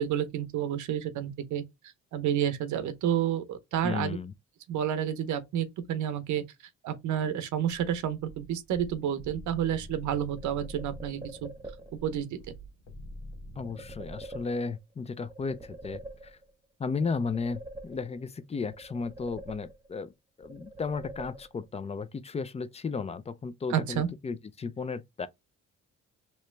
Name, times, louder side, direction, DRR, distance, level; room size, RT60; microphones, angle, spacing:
voice 1, 0.0-1.6 2.1-4.2 4.7-6.4 6.8-11.5 12.0-12.3 23.7-24.1, right 10 dB, 75° right, 0.7 m, -30 dB
voice 2, 3.8-4.3 13.6-16.4 16.8-20.1 20.4-25.3, left 4 dB, 20° left, 0.3 m, -34 dB
sound 1, 7.7-14.1, equal, 80° left, 1.2 m, -47 dB
sound 2, 10.1-12.1 13.6-14.9 15.3-16.7 17.0-18.4 18.7-20.1 20.4-21.8, right 2 dB, 15° right, 1.0 m, -45 dB
3.1 x 2.9 x 3.2 m
cardioid pair, 90°, 30 cm